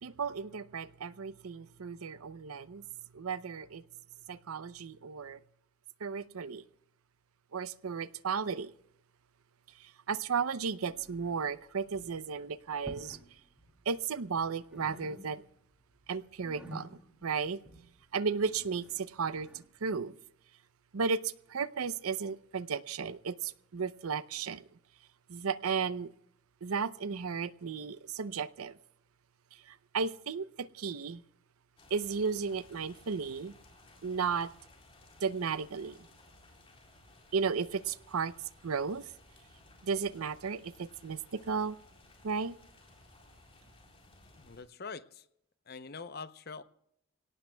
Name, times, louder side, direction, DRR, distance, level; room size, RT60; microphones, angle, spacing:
voice 1, 0.0-2.8 3.1-3.9 4.3-5.4 6.0-6.6 7.5-8.7 9.8-13.2 13.9-15.4 16.1-17.6 18.1-20.2 20.9-24.6 25.3-26.1 26.6-28.8 29.5-31.2 31.9-33.5 34.0-34.5 35.2-36.1 37.3-38.3 38.6-39.1 39.8-41.8 42.2-42.6, right 5 dB, 85° right, 0.6 m, -34 dB
sound 1, 10.9-11.6 11.8-12.2 12.7-13.3 13.6-14.4 14.7-15.7 16.0-19.7, equal, 5° right, 2.3 m, -51 dB
sound 2, 31.8-44.6, left 2 dB, 25° left, 3.6 m, -59 dB
voice 2, 44.4-45.3 45.7-46.6, left 4 dB, 45° left, 0.6 m, -44 dB
24.5 x 17.5 x 2.2 m
head